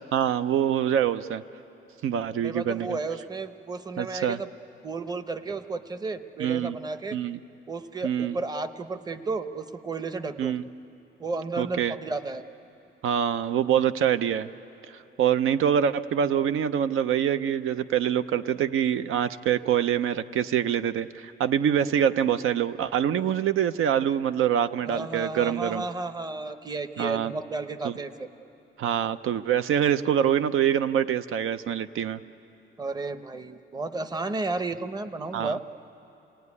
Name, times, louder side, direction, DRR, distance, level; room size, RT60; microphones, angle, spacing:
voice 1, 0.1-1.4 2.0-3.0 4.0-4.4 6.4-6.8 7.1-7.4 8.0-8.4 10.4-10.6 11.6-11.9 13.0-14.5 15.2-25.8 27.0-27.3 27.8-27.9 28.8-32.2 35.3-35.6, right 9 dB, 90° right, 12 dB, 0.7 m, -25 dB
voice 2, 2.4-4.5 4.8-7.2 7.7-10.5 11.2-12.4 23.2-23.3 24.9-28.3 32.8-35.6, right 3 dB, 20° right, 10 dB, 0.8 m, -33 dB
29.5 x 19.0 x 9.7 m, 2.9 s
wide cardioid pair, 150°, 21 cm